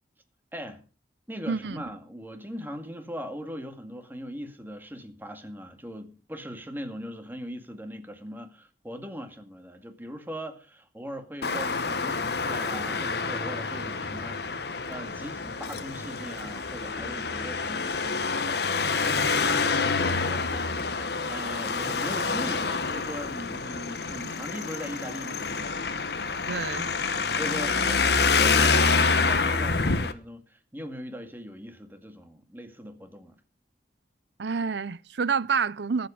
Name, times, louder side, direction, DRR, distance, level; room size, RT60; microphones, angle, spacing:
voice 1, 0.5-0.8 1.3-25.8 27.4-33.4, equal, 10° right, 2.1 m, -40 dB
voice 2, 1.5-1.8 26.5-26.9 34.4-36.1, right 5 dB, 70° right, 0.6 m, -28 dB
Traffic noise roadway noise, 11.4-30.1, left 4 dB, 60° left, 1.3 m, -27 dB
23.0 x 7.9 x 5.1 m
head